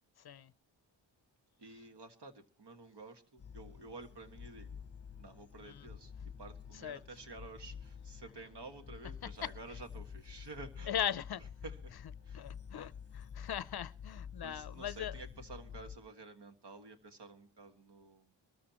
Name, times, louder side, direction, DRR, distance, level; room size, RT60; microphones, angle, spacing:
voice 1, 1.6-4.8 5.2-6.1 6.4-10.9 11.6-11.9 12.2-12.4 14.4-18.3, right 3 dB, 60° right, 7 dB, 1.8 m, -51 dB
sound 1, 3.4-16.0, left 7 dB, 30° left, 0.9 m, -49 dB
voice 2, 10.9-11.4 12.3-15.1, left 10 dB, 55° left, 19 dB, 0.6 m, -39 dB
22.5 x 13.5 x 3.0 m, 0.36 s
wide cardioid pair, 80°, 46 cm